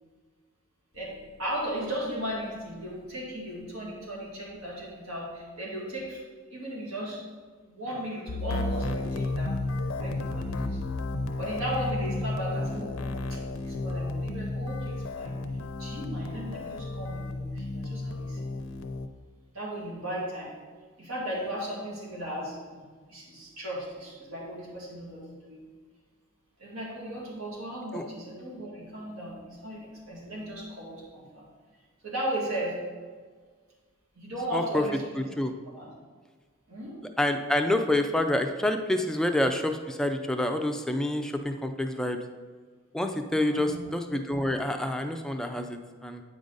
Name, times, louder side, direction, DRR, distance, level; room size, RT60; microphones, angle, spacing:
voice 1, 1.4-6.2 6.5-7.2 7.7-10.8 11.4-15.4 15.8-18.5 19.5-20.5 21.0-25.6 26.6-31.4 32.0-32.8 34.1-35.2 35.6-35.9 36.7-36.9 43.4-43.9, right 1 dB, 80° right, -4 dB, 2.2 m, -36 dB
sound 1, 8.3-19.1, left 2 dB, 75° left, 0.6 m, -32 dB
voice 2, 34.5-34.8 35.4-35.5 37.2-42.2 42.9-46.2, left 1 dB, 5° left, 5 dB, 0.4 m, -27 dB
8.8 x 5.0 x 4.0 m, 1.5 s
head